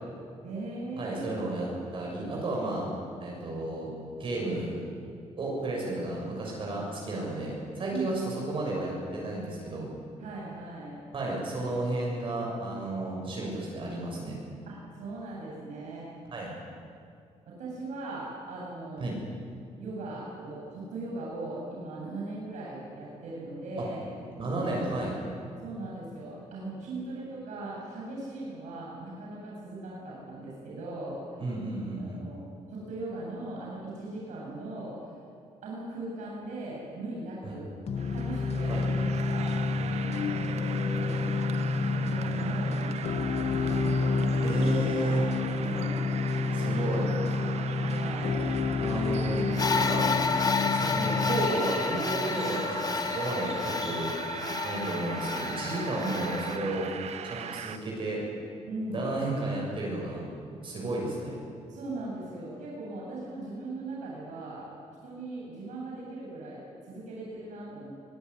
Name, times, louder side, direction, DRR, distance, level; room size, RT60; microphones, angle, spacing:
voice 1, 0.4-1.2 7.3-7.4 7.9-8.3 10.2-11.0 14.7-16.1 17.5-19.0 19.8-24.0 25.6-31.2 32.0-32.4 32.7-35.0 35.6-37.7 38.1-39.5 40.0-41.3 41.8-42.9 43.5-44.7 45.0-45.2 45.6-46.0 46.6-46.8 47.1-48.4 54.5-54.6 58.7-59.0 61.7-64.7 65.0-67.9, right 2 dB, 85° right, -5 dB, 7.9 m, -39 dB
voice 2, 1.0-2.9 3.2-3.9 4.2-4.7 5.4-9.9 11.1-14.4 16.3-16.5 19.0-19.2 24.4-25.2 31.4-32.2 37.4-37.5 38.7-39.1 44.4-45.2 46.5-47.1 48.8-49.4 49.7-50.1 50.7-54.1 54.6-56.9 57.2-58.2 58.9-60.2 60.6-61.4, right 2 dB, 45° right, -3 dB, 6.9 m, -32 dB
Experimental sequencer music, 37.9-51.5, left 3 dB, 60° left, 2.2 m, -29 dB
sound 1, 38.0-57.8, right 8 dB, 60° right, 1.3 m, -40 dB
sound 2, 49.5-56.6, left 5 dB, 30° left, 1.3 m, -30 dB
24.0 x 19.0 x 9.8 m, 2.4 s
cardioid pair, 135°, 12 cm